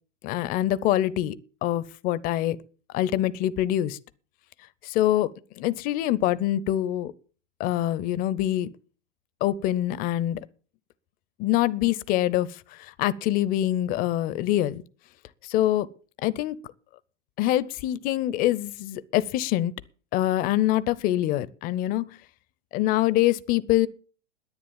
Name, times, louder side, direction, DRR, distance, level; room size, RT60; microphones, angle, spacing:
voice 1, 0.2-2.6 2.9-4.0 4.8-7.1 7.6-8.7 9.4-10.4 11.4-14.8 15.5-15.9 16.2-16.6 17.4-19.7 20.1-22.2 22.7-23.9, left 13 dB, 25° left, 0.5 m, -25 dB
10.5 x 9.7 x 7.3 m
figure-of-eight pair, 105°, 37 cm